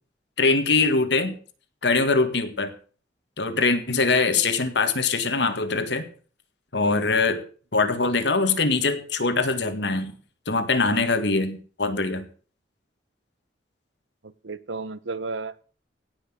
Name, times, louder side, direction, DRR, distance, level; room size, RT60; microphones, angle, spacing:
voice 1, 0.4-1.4 1.8-2.7 3.4-6.1 6.7-7.4 7.7-10.1 10.5-12.3, left 3 dB, 65° left, 9 dB, 1.9 m, -22 dB
voice 2, 14.2-15.6, right 3 dB, 90° right, 16 dB, 1.0 m, -33 dB
17.0 x 6.1 x 7.7 m, 0.41 s
head